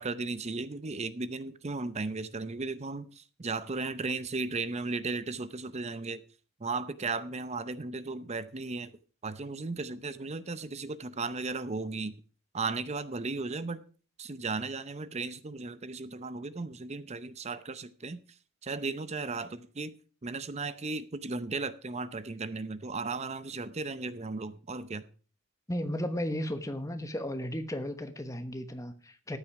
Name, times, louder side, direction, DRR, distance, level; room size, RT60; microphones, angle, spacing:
voice 1, 0.0-6.2 6.6-8.9 9.2-12.1 12.5-13.8 14.2-18.2 18.6-19.9 20.2-25.0, right 3 dB, 30° right, 0.7 m, -35 dB
voice 2, 25.7-29.4, left 1 dB, 15° left, 1.1 m, -34 dB
14.0 x 8.9 x 4.8 m
head